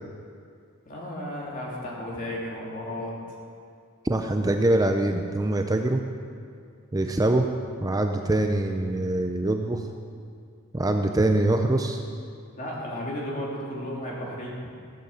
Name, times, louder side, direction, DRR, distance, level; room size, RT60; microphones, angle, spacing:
voice 1, 0.8-3.1 12.6-14.7, left 1 dB, 40° left, -4 dB, 3.1 m, -34 dB
voice 2, 4.0-6.0 6.9-7.5 7.8-9.9 10.7-12.0, right 2 dB, 15° right, 4 dB, 0.5 m, -24 dB
15.0 x 8.1 x 7.5 m, 2.3 s
head